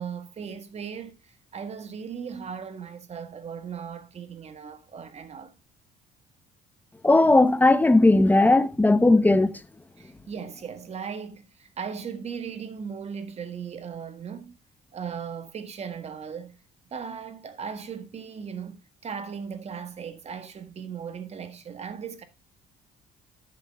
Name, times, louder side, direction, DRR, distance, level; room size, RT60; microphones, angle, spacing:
voice 1, 0.0-5.5 10.0-14.5 14.9-16.6 16.9-22.2, right 6 dB, 40° right, 1.8 m, -37 dB
voice 2, 7.0-9.5, left 2 dB, 10° left, 0.9 m, -17 dB
13.5 x 7.8 x 2.3 m
cardioid pair, 110°, 17 cm